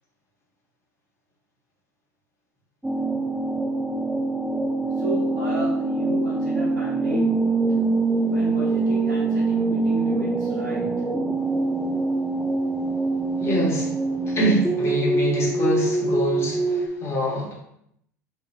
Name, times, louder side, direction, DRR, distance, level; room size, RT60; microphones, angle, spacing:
sound 1, 2.8-16.9, right 3 dB, 5° right, 0.3 m, -24 dB
voice 1, 5.0-7.9 8.2-11.1, equal, 75° right, -6 dB, 0.9 m, -34 dB
voice 2, 13.4-13.9 14.3-17.5, equal, 30° left, -4 dB, 1.5 m, -25 dB
3.0 x 2.6 x 3.2 m, 0.73 s
figure-of-eight pair, 80°, 9 cm